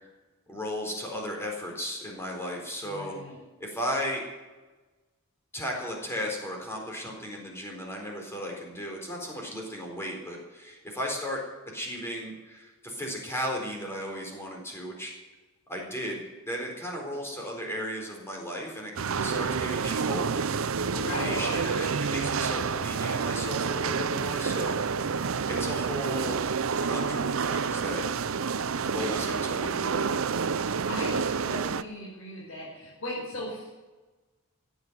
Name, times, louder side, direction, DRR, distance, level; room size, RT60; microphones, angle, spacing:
voice 1, 0.5-3.1 3.6-4.2 5.5-15.1 15.7-20.6 20.9-24.8 25.4-26.4 26.8-28.0 28.8-30.1, equal, 10° left, 0 dB, 4.1 m, -35 dB
voice 2, 2.8-3.4 19.3-19.6 20.9-21.6 28.7-29.1 30.9-33.7, left 1 dB, 65° left, -6 dB, 5.5 m, -38 dB
sound 1, 19.0-31.8, right 5 dB, 70° right, 0.6 m, -29 dB
15.5 x 9.2 x 8.1 m, 1.2 s
head